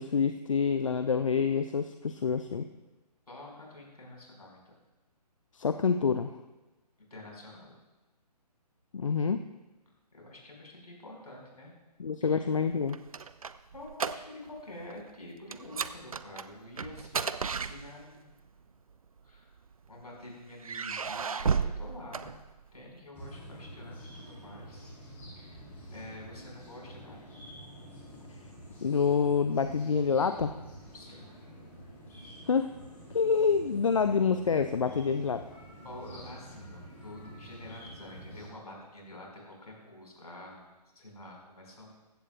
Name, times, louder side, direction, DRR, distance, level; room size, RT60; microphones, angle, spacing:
voice 1, 0.0-2.7 5.5-6.4 8.9-9.4 12.0-13.0 28.8-30.6 32.5-32.7 33.1-35.4, left 6 dB, 50° left, 9 dB, 0.5 m, -27 dB
voice 2, 3.3-4.7 7.1-7.7 10.1-11.7 12.2-12.5 13.7-18.4 19.2-19.5 19.9-22.3 22.7-24.9 25.3-25.6 25.9-27.2 30.9-31.2 35.8-42.0, left 1 dB, 65° left, -1 dB, 4.9 m, -48 dB
sound 1, 12.7-14.6 14.9-15.1 15.5-18.3 19.2-20.0 20.6-22.9, right 6 dB, 55° right, 0.5 m, -34 dB
sound 2, 23.1-38.5, equal, 10° left, 3.8 m, -48 dB
15.5 x 15.0 x 2.3 m, 1.1 s
figure-of-eight pair, 140°, 21 cm